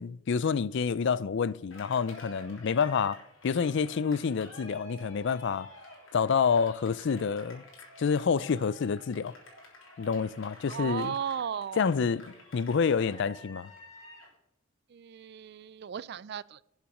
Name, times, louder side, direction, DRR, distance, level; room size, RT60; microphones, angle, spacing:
voice 1, 0.0-5.7 6.1-7.6 8.0-9.3 10.0-11.1 11.8-12.2 12.5-13.7, left 6 dB, 60° left, 0.4 m, -28 dB
Cheering, 1.7-14.3, left 1 dB, 80° left, 3.5 m, -50 dB
voice 2, 10.7-11.8 14.9-16.6, right 8 dB, 55° right, 0.4 m, -36 dB
12.0 x 7.3 x 5.3 m
head